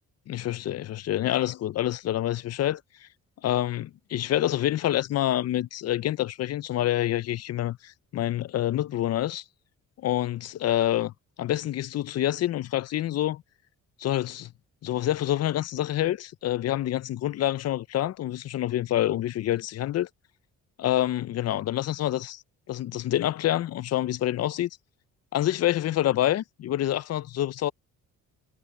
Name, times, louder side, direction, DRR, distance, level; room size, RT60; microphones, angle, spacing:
voice 1, 0.3-3.1 3.4-9.4 10.0-11.1 11.4-13.4 14.0-14.5 14.8-20.1 20.8-22.4 22.7-24.7 25.3-27.7, left 13 dB, 55° left, 0.5 m, -27 dB
cardioid pair, 90°, 30 cm